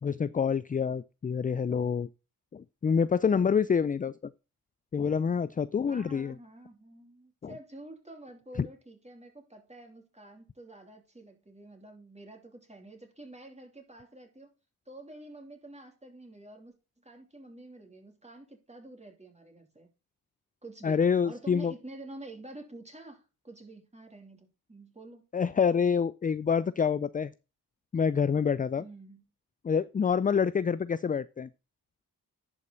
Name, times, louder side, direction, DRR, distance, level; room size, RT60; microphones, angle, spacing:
voice 1, 0.0-2.1 2.5-4.3 4.9-6.4 7.4-7.6 8.6-8.7 20.8-21.7 25.3-27.3 27.9-28.9 29.6-31.5, left 6 dB, 25° left, 0.3 m, -27 dB
voice 2, 5.9-14.5 14.9-16.7 17.0-19.9 20.6-25.2 28.8-29.2, right 2 dB, 15° right, 2.9 m, -48 dB
11.0 x 5.3 x 3.9 m
supercardioid pair, 45°, 39 cm